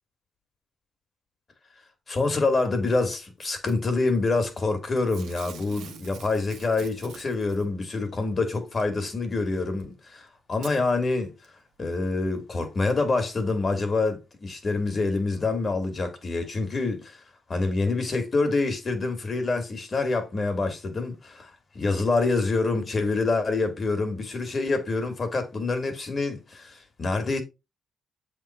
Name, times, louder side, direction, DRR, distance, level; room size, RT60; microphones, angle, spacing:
voice 1, 2.1-11.3 11.8-17.2 17.5-27.4, left 3 dB, 35° left, 2.1 m, -26 dB
Packing tape duct tape / Tearing, 3.4-3.9 5.1-7.6 8.8-8.9 9.8-9.9 10.5-10.8 11.4-11.5, right 7 dB, 75° right, 1.4 m, -46 dB
7.6 x 3.8 x 4.3 m
cardioid pair, 90°, 0 cm